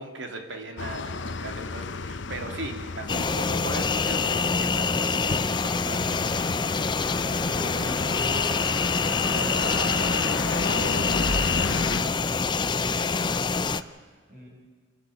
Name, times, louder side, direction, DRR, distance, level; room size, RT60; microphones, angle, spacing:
voice 1, 0.0-6.9 12.7-14.1, right 2 dB, 80° right, 4 dB, 3.0 m, -39 dB
sound 1, 0.8-12.0, left 3 dB, 75° left, 0.8 m, -33 dB
sound 2, 3.1-13.8, left 4 dB, 25° left, 0.5 m, -26 dB
voice 2, 7.2-8.4 9.3-10.2 10.5-13.0 14.3-14.5, right 1 dB, 50° right, -4 dB, 6.9 m, -39 dB
26.5 x 12.5 x 8.5 m, 1.5 s
head